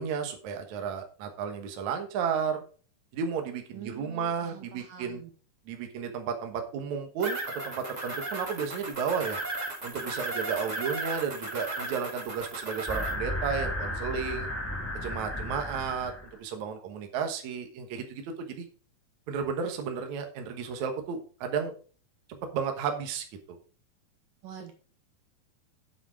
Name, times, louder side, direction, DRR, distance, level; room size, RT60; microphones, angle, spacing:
voice 1, 0.0-2.6 3.1-5.2 5.7-9.4 9.8-14.5 15.0-16.1 16.4-18.7 19.3-21.7 22.5-23.6, right 6 dB, 65° right, 5 dB, 2.5 m, -33 dB
voice 2, 3.7-5.3 24.4-24.7, right 7 dB, 80° right, 4 dB, 3.6 m, -44 dB
sound 1, 7.2-13.1, right 2 dB, 25° right, 0.9 m, -35 dB
sound 2, 12.9-16.4, left 1 dB, 5° left, 1.0 m, -34 dB
8.3 x 8.0 x 4.8 m, 0.39 s
omnidirectional pair, 3.8 m